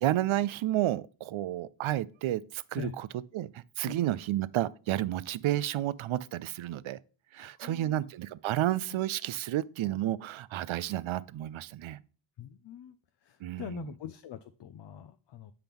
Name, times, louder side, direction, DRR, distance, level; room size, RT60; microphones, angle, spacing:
voice 1, 0.0-3.1 3.3-7.0 7.3-12.0 13.4-13.8, right 13 dB, 70° right, 0.5 m, -31 dB
voice 2, 3.8-4.2 7.4-8.0 8.6-9.0 12.4-13.0 13.2-15.5, left 9 dB, 55° left, 0.5 m, -44 dB
7.8 x 5.8 x 3.5 m
wide cardioid pair, 100°, 50 cm